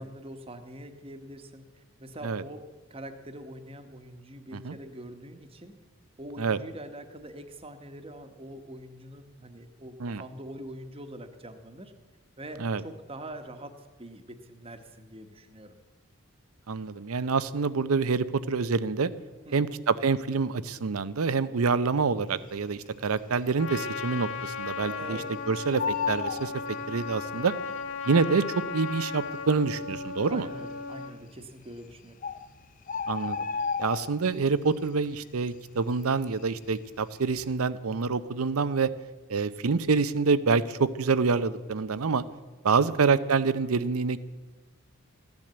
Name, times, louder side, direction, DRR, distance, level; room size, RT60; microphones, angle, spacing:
voice 1, 0.0-2.6 2.9-5.8 6.2-11.9 12.4-15.7 19.4-19.7 25.0-25.3 30.3-32.2, right 1 dB, 25° right, 7 dB, 1.1 m, -44 dB
voice 2, 16.7-19.1 19.5-26.5 26.9-27.5 28.0-30.5 33.1-33.4 33.8-38.9 39.3-42.2 42.6-44.2, right 4 dB, 90° right, 15 dB, 0.6 m, -26 dB
Bird, 22.8-23.4 23.7-23.8 24.1-25.3 25.5-27.4 28.2-28.3 29.0-29.1 29.3-29.4 30.0-30.5 31.4-31.5 31.9-32.0 32.2-34.5 34.8-35.2 35.5-36.8 37.2-37.4, left 6 dB, 40° left, 0.5 m, -33 dB
Trumpet, 23.6-31.2, left 5 dB, 60° left, 1.4 m, -36 dB
15.0 x 10.5 x 7.9 m, 1.2 s
head